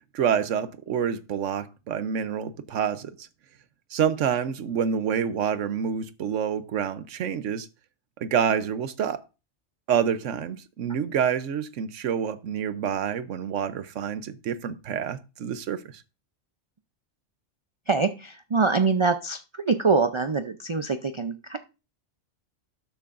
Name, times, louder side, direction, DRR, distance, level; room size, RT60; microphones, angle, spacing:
voice 1, 0.1-3.3 3.9-7.7 8.2-9.2 9.9-16.0, right 8 dB, 90° right, 1.1 m, -27 dB
voice 2, 17.9-19.4 19.7-21.6, right 4 dB, 50° right, 0.3 m, -24 dB
12.5 x 9.2 x 2.5 m
omnidirectional pair, 1.2 m